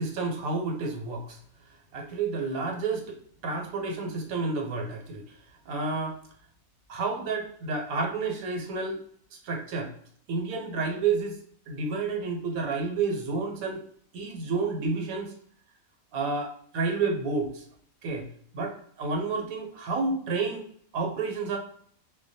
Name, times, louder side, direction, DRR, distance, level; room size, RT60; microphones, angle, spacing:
voice 1, 0.0-1.4 1.9-3.2 3.4-5.2 5.7-6.2 6.9-9.0 9.3-9.9 10.3-11.4 11.7-13.8 14.1-15.3 16.1-17.6 18.0-18.3 18.5-20.7 20.9-21.6, right 4 dB, 85° right, 2 dB, 1.0 m, -30 dB
2.2 x 2.1 x 2.6 m, 0.63 s
omnidirectional pair, 1.4 m